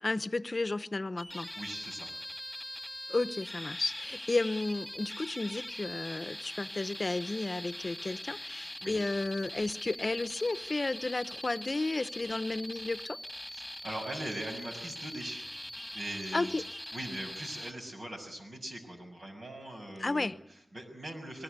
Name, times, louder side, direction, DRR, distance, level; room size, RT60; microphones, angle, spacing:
voice 1, 0.0-1.5 3.1-13.2 16.3-16.6 20.0-20.3, left 2 dB, 45° left, 14 dB, 0.8 m, -33 dB
sound 1, 1.2-17.7, equal, 5° left, 2.3 m, -42 dB
voice 2, 1.5-2.1 8.8-9.0 13.5-15.5 15.9-16.5 16.9-21.4, right 1 dB, 70° right, 3 dB, 6.5 m, -41 dB
22.5 x 20.5 x 8.1 m, 0.83 s
cardioid pair, 45°, 0 cm